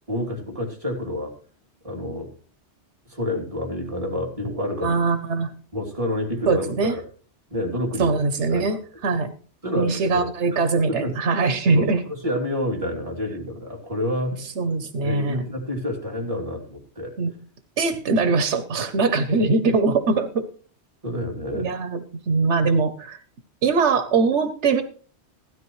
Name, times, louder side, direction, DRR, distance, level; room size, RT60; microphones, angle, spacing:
voice 1, 0.1-1.3 1.8-2.3 3.1-4.9 5.7-6.9 7.5-8.2 8.5-8.8 9.6-10.6 10.9-11.1 11.7-14.4 15.0-17.1 19.4-19.5 21.0-21.7, left 1 dB, 30° right, -1 dB, 3.1 m, -28 dB
voice 2, 4.8-5.5 6.5-7.0 8.0-9.3 9.8-12.0 14.4-15.4 17.2-17.3 17.8-20.5 21.5-22.0 22.3-23.2 23.6-24.8, right 4 dB, 85° right, 10 dB, 1.2 m, -22 dB
16.0 x 13.0 x 3.1 m, 0.41 s
omnidirectional pair, 1.1 m